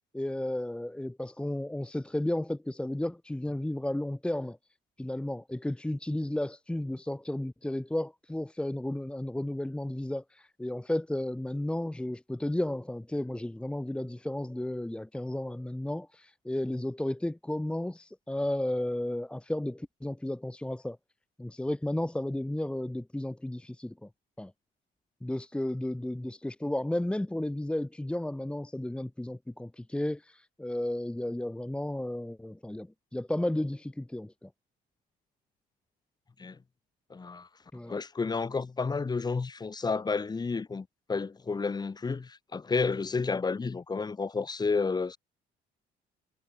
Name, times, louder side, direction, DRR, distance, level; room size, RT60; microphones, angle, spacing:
voice 1, 0.1-4.6 5.0-21.0 21.4-24.1 24.4-24.5 25.2-34.5 37.7-37.9, left 1 dB, 5° left, 1.8 m, -33 dB
voice 2, 37.1-37.5 37.9-45.2, left 4 dB, 25° left, 3.1 m, -31 dB
cardioid pair, 110°, 17 cm